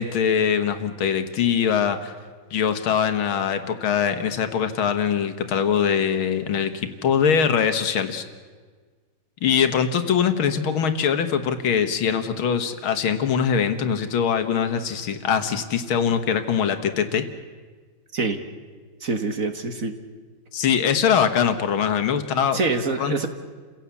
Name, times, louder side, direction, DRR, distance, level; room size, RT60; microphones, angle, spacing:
voice 1, 0.0-2.1 2.5-8.2 9.4-17.3 20.5-22.6 23.0-23.3, left 7 dB, 80° left, 9 dB, 2.2 m, -22 dB
voice 2, 19.0-19.9 22.5-23.3, right 3 dB, 45° right, 7 dB, 1.7 m, -25 dB
29.0 x 16.5 x 8.4 m, 1.5 s
omnidirectional pair, 2.2 m